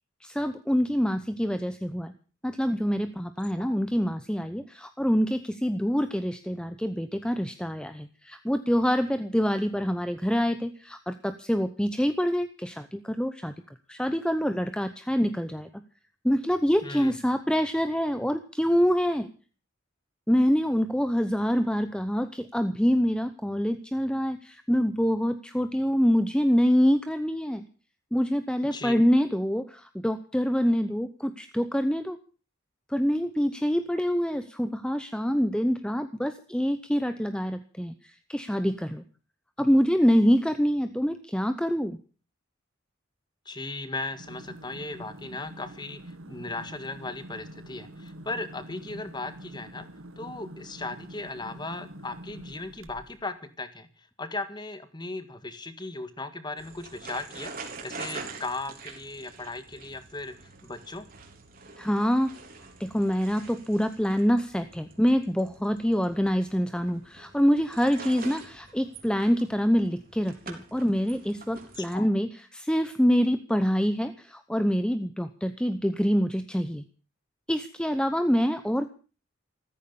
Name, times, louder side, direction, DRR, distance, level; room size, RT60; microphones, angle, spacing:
voice 1, 0.2-2.1 2.4-13.5 13.9-15.7 16.2-19.3 20.3-27.6 28.1-32.2 32.9-39.0 39.6-42.0 61.8-62.3 62.8-76.8 77.5-78.9, equal, 5° left, 10 dB, 0.8 m, -26 dB
voice 2, 16.8-17.1 28.7-29.0 43.5-49.9 50.2-57.6 57.8-60.3 60.6-61.1 71.8-72.1, left 2 dB, 20° left, 11 dB, 1.8 m, -37 dB
sound 1, 44.1-53.3, right 1 dB, 85° right, 1.6 m, -45 dB
sound 2, 56.6-72.0, right 4 dB, 45° right, 3.8 m, -45 dB
15.0 x 14.0 x 6.9 m, 0.38 s
head